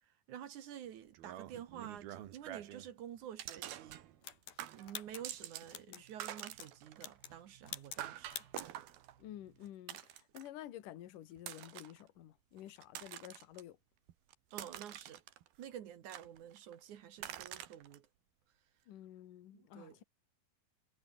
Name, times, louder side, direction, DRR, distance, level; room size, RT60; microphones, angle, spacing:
voice 1, 0.0-4.0 4.7-8.4 14.5-15.2 15.6-18.1 19.5-20.0, right 10 dB, 60° right, 2.6 m, -50 dB
sound 1, 1.1-2.9 3.4-4.3 4.6-5.8 6.0-10.6 11.4-12.0 12.6-13.6 14.1-15.6 16.1-16.8 17.2-18.0, right 12 dB, 85° right, 3.4 m, -48 dB
sound 2, 4.2-6.0 6.4-6.7 7.0-7.4 7.7-8.0 8.3-8.7, left 9 dB, 80° left, 4.6 m, -47 dB
voice 2, 9.2-13.8 18.9-20.0, left 12 dB, 65° left, 3.0 m, -51 dB
omnidirectional pair, 4.3 m